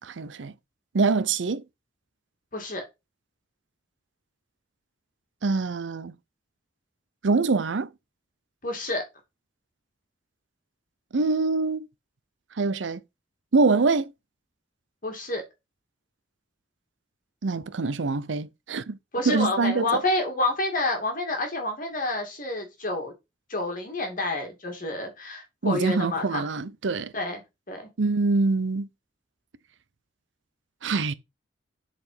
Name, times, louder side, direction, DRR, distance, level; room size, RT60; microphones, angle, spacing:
voice 1, 0.0-0.5 0.9-1.6 5.4-6.2 7.2-7.9 11.1-11.9 12.6-13.0 13.5-14.1 17.4-19.0 19.3-20.0 25.6-27.1 28.0-28.9 30.8-31.1, right 3 dB, 80° right, 0.6 m, -24 dB
voice 2, 2.5-2.8 8.6-9.0 15.0-15.4 19.1-23.1 23.5-26.5 27.1-27.4 27.7-27.9, left 2 dB, 45° left, 2.5 m, -29 dB
7.1 x 4.2 x 5.0 m
head